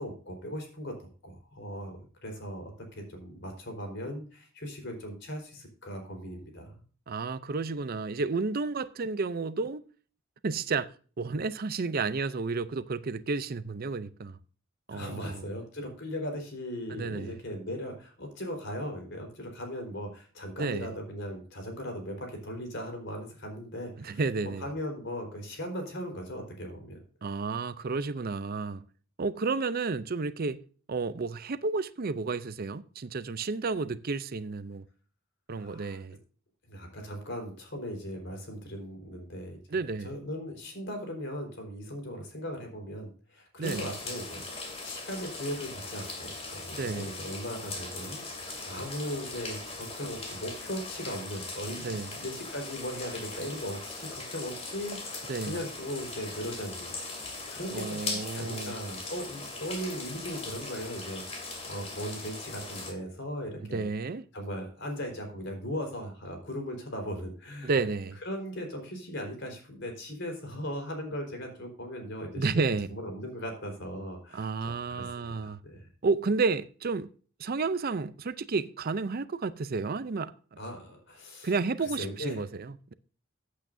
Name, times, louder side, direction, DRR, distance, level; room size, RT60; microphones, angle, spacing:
voice 1, 0.0-6.7 14.9-24.2 24.6-27.0 35.5-36.0 36.7-39.6 40.0-63.8 64.3-67.7 68.2-75.9 80.6-81.5 81.8-82.4, equal, 55° left, 4.3 m, -38 dB
voice 2, 7.1-9.9 10.4-10.9 11.2-14.4 14.9-15.4 16.9-17.4 20.6-20.9 24.0-24.7 27.2-28.9 29.2-30.6 30.9-34.9 35.5-36.2 39.7-40.2 43.6-43.9 46.7-47.1 51.8-52.1 55.3-55.6 57.7-58.8 63.6-64.2 67.6-68.2 72.3-73.0 74.3-75.6 76.0-77.1 77.4-80.3 81.4-82.9, right 4 dB, 45° right, 0.5 m, -31 dB
sound 1, 43.6-62.9, left 3 dB, 30° left, 2.7 m, -40 dB
15.0 x 8.4 x 2.7 m
head